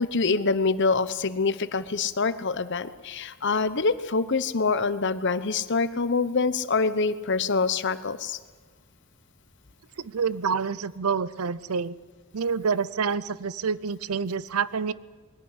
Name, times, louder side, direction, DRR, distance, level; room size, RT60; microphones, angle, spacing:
voice 1, 0.0-8.4, left 4 dB, 55° left, 14 dB, 0.9 m, -25 dB
voice 2, 10.0-11.9 12.3-14.9, right 5 dB, 80° right, 19 dB, 0.6 m, -27 dB
21.0 x 16.5 x 9.8 m, 1.4 s
head